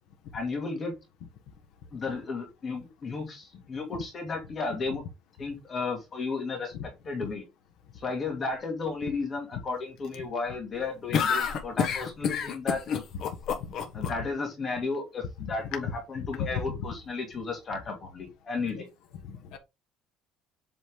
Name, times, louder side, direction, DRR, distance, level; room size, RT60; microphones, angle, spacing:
voice 1, 0.3-0.9 1.9-5.0 5.4-6.7 7.1-7.5 7.9-13.0 13.9-18.9, left 4 dB, 25° left, 2.2 m, -33 dB
sound 1, 11.1-14.1, left 7 dB, 45° left, 1.4 m, -28 dB
voice 2, 13.6-14.1 15.8-16.5 18.7-18.8 19.2-19.6, left 7 dB, 75° left, 1.4 m, -37 dB
8.0 x 4.2 x 3.7 m
cardioid pair, 180°, 0 cm